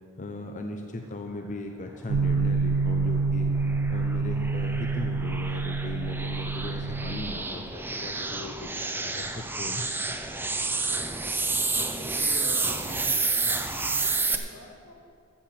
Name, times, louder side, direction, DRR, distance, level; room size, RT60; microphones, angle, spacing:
voice 1, 0.2-3.6 3.9-9.8, left 2 dB, 35° left, 3 dB, 0.8 m, -38 dB
sound 1, 2.1-7.3, right 4 dB, 90° right, 0.5 m, -27 dB
sound 2, 2.8-14.4, right 3 dB, 10° right, 0.7 m, -30 dB
voice 2, 11.8-14.9, left 1 dB, 80° left, 1 dB, 2.0 m, -44 dB
14.5 x 6.8 x 7.6 m, 2.3 s
head